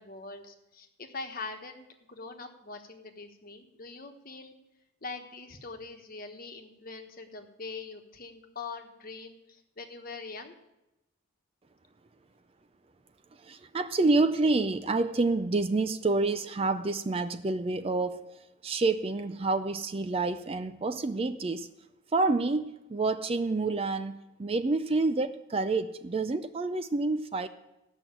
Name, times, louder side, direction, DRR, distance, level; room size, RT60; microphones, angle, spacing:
voice 1, 0.0-4.5 5.0-10.5, left 4 dB, 40° left, 5 dB, 1.2 m, -43 dB
voice 2, 13.4-18.3 18.6-21.7 22.1-27.5, right 3 dB, 25° right, 10 dB, 0.4 m, -28 dB
15.0 x 6.2 x 8.9 m, 0.92 s
head